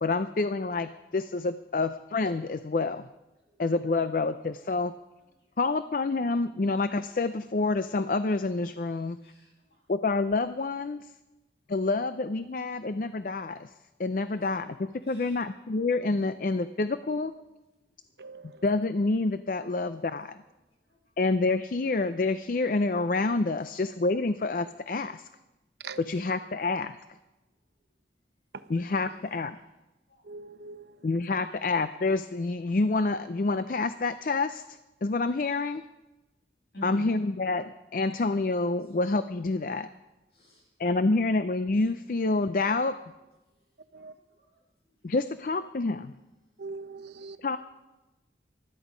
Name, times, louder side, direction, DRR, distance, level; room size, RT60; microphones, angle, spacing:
voice 1, 0.0-3.1 3.6-4.9 5.6-9.2 9.9-11.0 11.7-13.7 14.0-17.3 18.6-20.4 21.2-25.3 26.0-27.0 28.7-29.6 31.0-34.6 35.0-35.8 36.8-39.9 40.8-42.9 45.0-46.1 47.4-47.6, left 3 dB, 50° left, 0.5 m, -28 dB
voice 2, 9.2-9.8 14.3-14.4 15.0-15.4 20.8-21.0 29.2-29.3 29.5-29.6 30.1-30.2 31.4-31.5 36.7-37.1 40.3-40.7 43.9-44.6 45.1-45.2, left 1 dB, 65° left, 6.6 m, -48 dB
voice 3, 18.2-18.7 25.8-26.1 30.2-31.0 43.9-44.1 46.6-47.4, right 4 dB, 70° right, 0.8 m, -42 dB
20.0 x 13.0 x 5.1 m
head